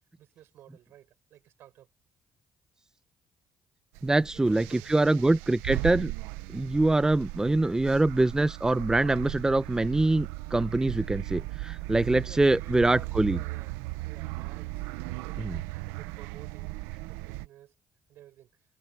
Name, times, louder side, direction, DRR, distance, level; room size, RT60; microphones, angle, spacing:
voice 1, 0.2-1.9 4.3-5.2 11.9-14.9 15.2-17.7 18.1-18.5, right 12 dB, 75° right, 7.3 m, -54 dB
voice 2, 4.0-6.1 6.5-13.4 15.4-15.6, right 2 dB, 15° right, 0.7 m, -24 dB
sound 1, 4.0-17.5, right 20 dB, 90° right, 0.8 m, -37 dB
supercardioid pair, 55°, 4 cm